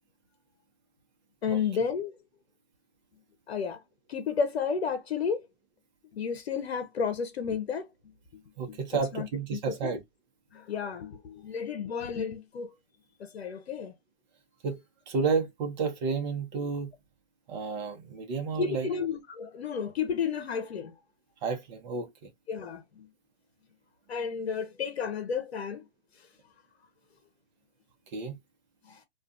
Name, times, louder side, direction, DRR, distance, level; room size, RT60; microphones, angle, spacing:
voice 1, 1.4-2.1 3.5-3.8 4.1-5.5 6.1-7.9 8.7-8.8 9.1-9.3 9.5-9.9 10.5-12.7 13.2-13.9 18.5-20.9 22.5-23.1 24.1-25.8 28.9-29.0, left 6 dB, 80° left, 0.7 m, -32 dB
voice 2, 8.6-10.0 14.6-14.8 15.1-16.9 17.5-18.9 21.4-22.1 28.1-28.4, right 5 dB, 45° right, 0.8 m, -31 dB
2.4 x 2.3 x 2.5 m
hypercardioid pair, 130°, 31 cm